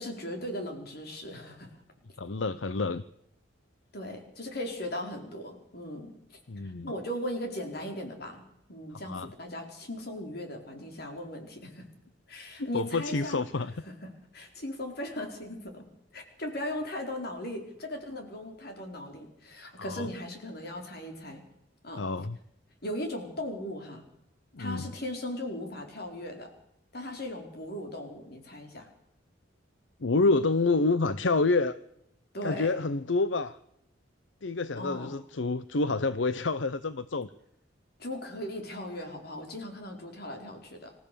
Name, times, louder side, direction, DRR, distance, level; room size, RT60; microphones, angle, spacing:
voice 1, 0.0-1.8 3.9-8.4 8.7-11.9 12.3-13.4 14.0-15.9 16.1-21.4 21.8-22.0 22.8-24.0 24.6-26.5 26.9-28.9 32.3-32.7 34.8-35.2 38.0-40.9, left 1 dB, 55° left, 4 dB, 4.4 m, -38 dB
voice 2, 2.2-3.0 6.5-6.9 9.1-9.3 12.6-13.7 19.8-20.1 22.0-22.4 24.5-24.9 30.0-31.7 32.4-33.6 34.4-37.3, left 3 dB, 80° left, 14 dB, 0.8 m, -28 dB
27.0 x 14.5 x 6.9 m, 0.81 s
head